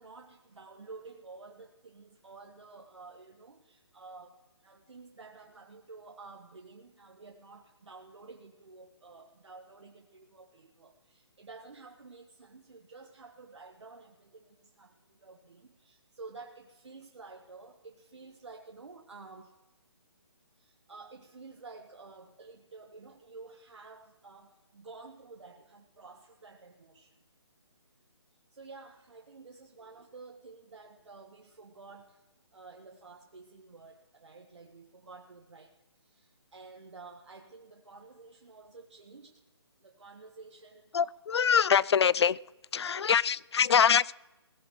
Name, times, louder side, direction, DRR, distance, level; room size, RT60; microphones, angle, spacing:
voice 1, 0.0-19.5 20.6-27.2 28.5-32.2 32.5-35.7 36.0-39.4 39.8-41.1 42.8-43.1, right 4 dB, 80° right, 2 dB, 1.5 m, -51 dB
voice 2, 40.9-42.4 42.7-44.2, left 7 dB, 70° left, 24 dB, 0.4 m, -24 dB
17.5 x 16.0 x 3.2 m, 1.1 s
hypercardioid pair, 155°, 15 cm